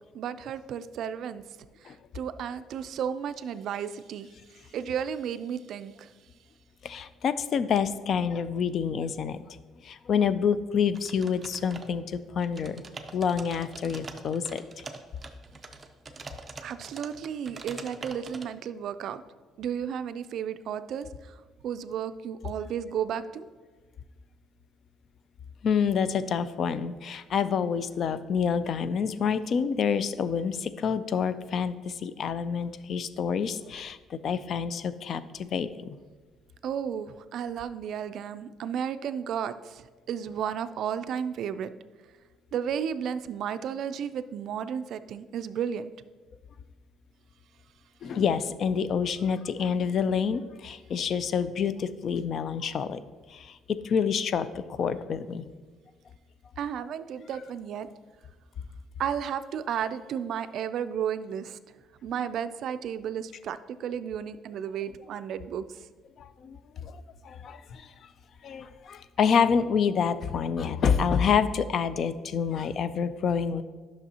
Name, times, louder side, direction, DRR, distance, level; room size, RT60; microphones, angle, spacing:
voice 1, 0.1-1.4 1.8-6.1 16.6-19.2 19.6-21.4 21.6-23.5 36.6-41.7 42.5-45.9 56.6-57.9 59.0-61.6 62.0-65.9, right 8 dB, 60° right, 12 dB, 0.4 m, -33 dB
voice 2, 6.8-9.6 9.8-12.8 13.1-14.6 25.6-36.0 48.0-53.0 53.3-55.5 66.2-68.1 68.4-73.6, left 6 dB, 50° left, 14 dB, 0.4 m, -28 dB
sound 1, 10.9-12.1 12.4-18.4, right 3 dB, 20° right, 0.6 m, -44 dB
11.0 x 6.1 x 2.8 m, 1.3 s
cardioid pair, 125°, 0 cm